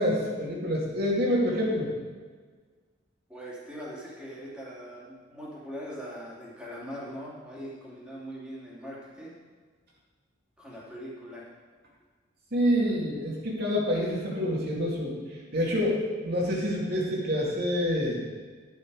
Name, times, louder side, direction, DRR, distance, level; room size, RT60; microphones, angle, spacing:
voice 1, 0.0-1.9 12.5-18.3, equal, 55° right, -4 dB, 2.5 m, -27 dB
voice 2, 3.3-9.3 10.6-11.5, equal, 5° right, -7 dB, 2.7 m, -41 dB
11.0 x 7.6 x 4.8 m, 1.5 s
head